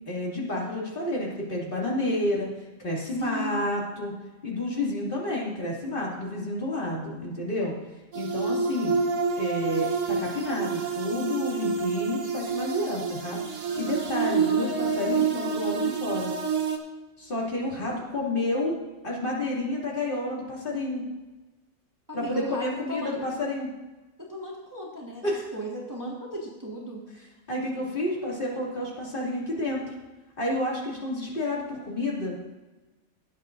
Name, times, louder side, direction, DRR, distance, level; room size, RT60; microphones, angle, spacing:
voice 1, 0.1-2.5 2.8-4.1 4.4-7.7 8.1-9.0 9.4-16.3 17.2-18.7 19.0-21.0 22.1-23.7 25.2-25.5 27.5-29.8 30.4-32.4, left 1 dB, 40° left, -4 dB, 2.7 m, -30 dB
voice 2, 3.2-3.7 22.1-23.2 24.3-27.0, right 1 dB, 15° right, -4 dB, 1.7 m, -36 dB
sound 1, 8.1-16.8, right 5 dB, 70° right, 1.4 m, -28 dB
18.5 x 8.4 x 2.6 m, 1.2 s
omnidirectional pair, 1.4 m